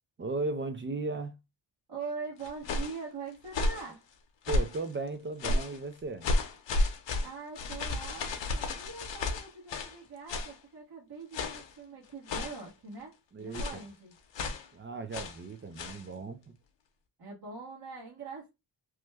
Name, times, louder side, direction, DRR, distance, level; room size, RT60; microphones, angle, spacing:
voice 1, 0.2-1.3 4.5-6.3 13.3-13.6 14.7-16.6, right 3 dB, 30° right, 0.4 m, -36 dB
voice 2, 1.9-4.1 7.2-14.1 17.2-18.5, right 4 dB, 50° right, 1.4 m, -43 dB
sound 1, 2.4-3.0 3.5-3.9 4.4-4.9 5.4-5.8 6.2-10.0 10.3-10.6 11.3-11.7 12.3-12.7 13.5-13.9 14.3-14.7 15.1-15.4 15.8-16.0, left 2 dB, 65° left, 0.8 m, -32 dB
3.0 x 2.2 x 3.3 m
cardioid pair, 100°, 46 cm